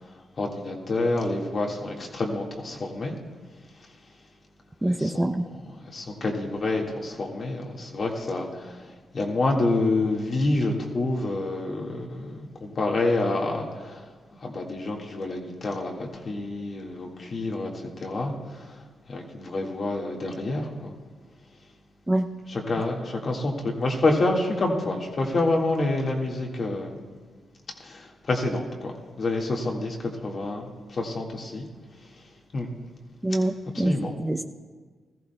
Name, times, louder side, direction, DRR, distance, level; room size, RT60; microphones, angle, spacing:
voice 1, 0.4-3.1 5.0-5.4 5.9-8.7 9.1-13.7 14.4-17.7 18.0-18.3 19.1-20.9 22.5-26.9 27.8-28.0 28.3-30.0 30.2-31.6 32.5-32.7 33.7-34.1, left 2 dB, 50° left, 0 dB, 1.9 m, -27 dB
voice 2, 4.8-5.3 22.1-22.3 33.2-33.9 34.2-34.4, right 1 dB, 15° right, 6 dB, 0.6 m, -24 dB
18.5 x 14.0 x 2.3 m, 1.5 s
supercardioid pair, 50°, 0 cm